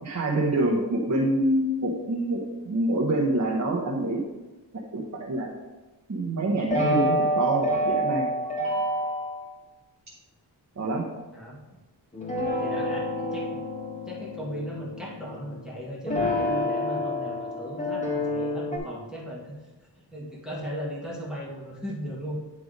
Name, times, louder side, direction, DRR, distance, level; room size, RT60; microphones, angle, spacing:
voice 1, 0.0-4.2 4.9-5.5 6.1-8.3 10.8-11.0, right 1 dB, 40° right, -3 dB, 1.0 m, -26 dB
sound 1, 6.7-9.4 12.1-15.6 16.1-18.8, left 1 dB, 15° left, 2.2 m, -28 dB
voice 2, 12.6-13.6 14.1-19.5 20.0-22.3, equal, ahead, -5 dB, 1.8 m, -37 dB
9.5 x 3.4 x 5.1 m, 1.2 s
wide cardioid pair, 155°, 42 cm